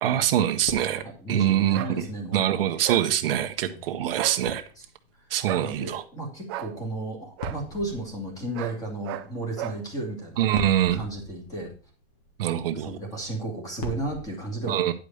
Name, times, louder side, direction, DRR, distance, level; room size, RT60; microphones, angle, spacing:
voice 1, 0.0-1.9 2.3-4.6 5.3-6.0 10.4-11.0 12.4-13.0 14.7-14.9, right 11 dB, 65° right, 7 dB, 0.9 m, -24 dB
sound 1, 0.6-14.3, left 1 dB, 40° left, 2.2 m, -43 dB
voice 2, 1.0-2.4 3.7-3.8 5.5-11.7 12.8-14.8, right 2 dB, 10° left, 1 dB, 2.3 m, -34 dB
sound 2, 1.7-1.9 2.8-3.1 4.1-4.4 5.5-5.7 6.5-6.7 7.4-7.6 8.5-8.8 9.0-9.3 9.6-9.8, right 13 dB, 25° right, 0.5 m, -34 dB
9.9 x 5.0 x 6.6 m, 0.37 s
supercardioid pair, 180°, 31 cm